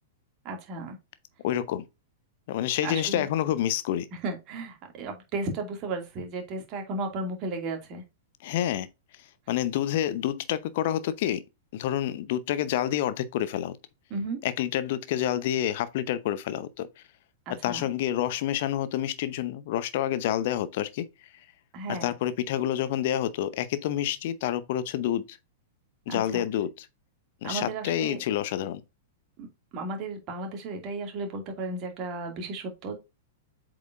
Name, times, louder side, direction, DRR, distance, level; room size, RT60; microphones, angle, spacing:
voice 1, 0.4-1.0 2.8-3.3 4.2-8.0 14.1-14.4 17.5-17.8 21.7-22.1 26.1-26.4 27.4-28.2 29.4-29.5 29.7-32.9, right 3 dB, 35° right, 2.2 m, -34 dB
voice 2, 1.4-1.8 2.5-4.1 8.4-8.9 9.5-11.4 11.7-13.8 14.4-16.9 17.6-21.1 21.9-25.4 26.1-26.9 27.4-28.8, left 11 dB, 50° left, 0.7 m, -28 dB
7.9 x 4.8 x 2.5 m
figure-of-eight pair, 100°, 0 cm